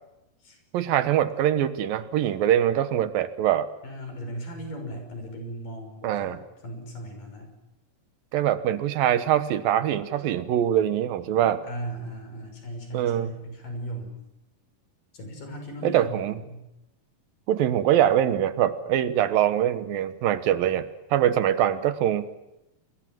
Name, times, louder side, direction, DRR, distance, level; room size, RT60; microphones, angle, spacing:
voice 1, 0.7-3.7 6.0-6.4 8.3-11.7 12.9-13.3 15.8-16.4 17.5-22.3, right 11 dB, 80° right, 13 dB, 3.0 m, -23 dB
voice 2, 3.8-6.4 6.6-7.5 11.7-14.2 15.1-16.6, right 1 dB, 70° left, 5 dB, 7.6 m, -37 dB
28.5 x 22.0 x 7.8 m, 0.90 s
omnidirectional pair, 4.0 m